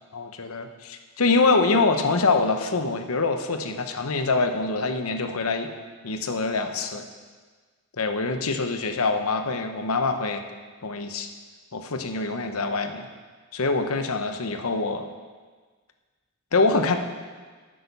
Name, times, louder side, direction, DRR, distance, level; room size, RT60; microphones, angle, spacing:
voice 1, 0.1-5.7 6.0-7.1 8.0-10.4 10.8-11.3 11.7-13.1 13.5-15.1 16.5-17.0, left 3 dB, 85° left, 7 dB, 0.9 m, -24 dB
11.5 x 8.7 x 5.4 m, 1.5 s
head